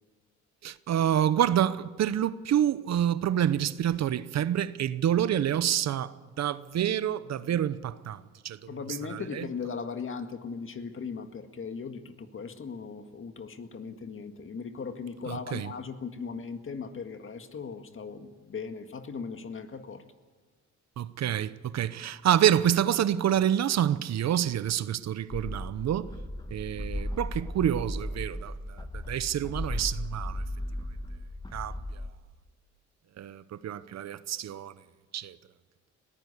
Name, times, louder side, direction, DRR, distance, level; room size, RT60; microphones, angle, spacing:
voice 1, 0.6-8.6 9.1-9.5 15.3-15.7 21.0-26.1 26.5-30.4 31.5-32.0 33.2-34.7 35.1-35.4, right 10 dB, 60° right, 0.9 m, -28 dB
voice 2, 8.7-20.0, left 5 dB, 45° left, 1.8 m, -38 dB
sound 1, 25.3-32.1, left 1 dB, 15° left, 1.5 m, -36 dB
21.5 x 15.5 x 8.4 m
cardioid pair, 90°, 30 cm